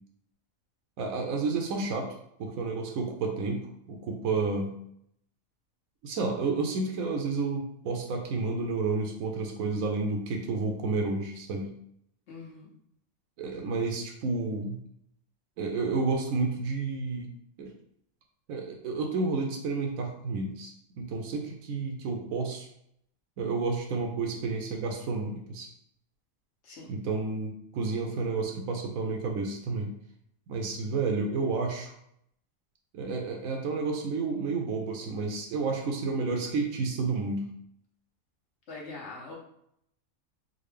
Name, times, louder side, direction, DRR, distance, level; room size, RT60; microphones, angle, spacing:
voice 1, 1.0-2.1 2.4-3.6 3.9-4.7 6.0-11.7 13.4-14.8 15.6-17.3 17.6-17.7 18.5-22.7 23.4-25.7 26.9-29.9 30.5-31.9 32.9-37.5, right 4 dB, 80° right, 2 dB, 1.0 m, -30 dB
voice 2, 12.3-12.7 26.6-26.9 38.7-39.3, left 3 dB, 55° left, -3 dB, 1.2 m, -43 dB
3.8 x 2.2 x 3.2 m, 0.72 s
omnidirectional pair, 1.4 m